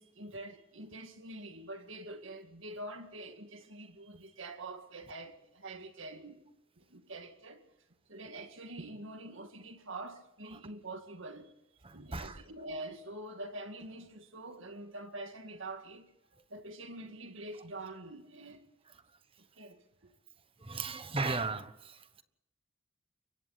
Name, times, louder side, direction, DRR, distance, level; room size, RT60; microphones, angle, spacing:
voice 1, 0.0-6.5 6.8-7.7 8.1-11.5 11.9-16.1 16.5-18.7 19.5-20.1, right 2 dB, 65° right, 2.2 m, -45 dB
voice 2, 20.6-22.2, right 3 dB, 25° right, 1.2 m, -35 dB
29.0 x 24.0 x 4.2 m
head